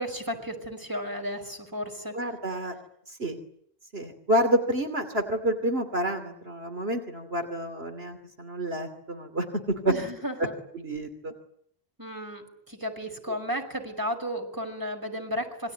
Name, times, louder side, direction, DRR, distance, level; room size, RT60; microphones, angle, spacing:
voice 1, 0.0-2.1 9.9-10.5 12.0-15.7, equal, 20° right, 5 dB, 5.5 m, -33 dB
voice 2, 2.1-2.7 3.2-3.4 3.9-9.9 10.7-11.3, right 1 dB, 75° right, 7 dB, 3.1 m, -29 dB
27.0 x 22.5 x 9.4 m, 0.66 s
omnidirectional pair, 1.1 m